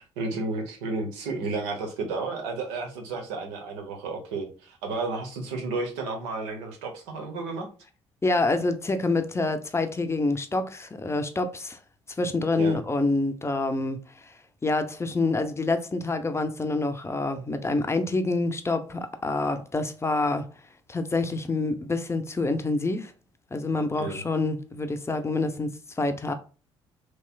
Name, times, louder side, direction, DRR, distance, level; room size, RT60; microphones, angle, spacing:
voice 1, 0.0-7.7 12.6-12.8 24.0-24.2, right 3 dB, 75° right, 0.9 m, -32 dB
voice 2, 8.2-11.8 12.2-14.3 14.6-20.5 20.9-23.1 23.5-26.3, left 3 dB, 20° left, 0.6 m, -27 dB
3.1 x 3.0 x 2.3 m
figure-of-eight pair, 50°, 14 cm